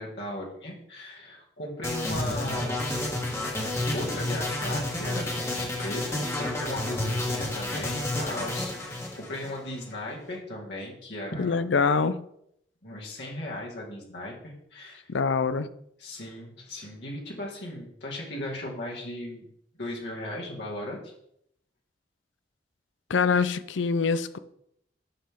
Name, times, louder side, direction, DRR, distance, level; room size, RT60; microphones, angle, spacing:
voice 1, 0.0-2.8 3.9-11.6 12.8-15.1 16.0-19.4 19.8-21.1, left 1 dB, 70° left, -3 dB, 2.3 m, -37 dB
sound 1, 1.8-9.9, left 1 dB, 15° left, 1.5 m, -30 dB
voice 2, 11.4-12.2 15.1-15.7 23.1-24.4, left 5 dB, 90° left, 14 dB, 0.5 m, -24 dB
8.8 x 6.5 x 3.8 m, 0.74 s
head